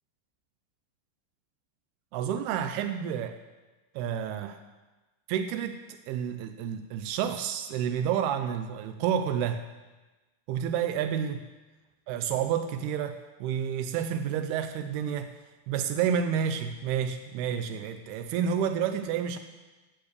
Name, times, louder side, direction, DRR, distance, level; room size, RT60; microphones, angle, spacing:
voice 1, 2.1-3.4 4.0-4.6 5.3-9.6 10.5-11.5 12.1-15.3 15.7-19.4, right 8 dB, 90° right, 9 dB, 2.2 m, -30 dB
12.0 x 8.9 x 8.2 m, 1.2 s
omnidirectional pair, 5.3 m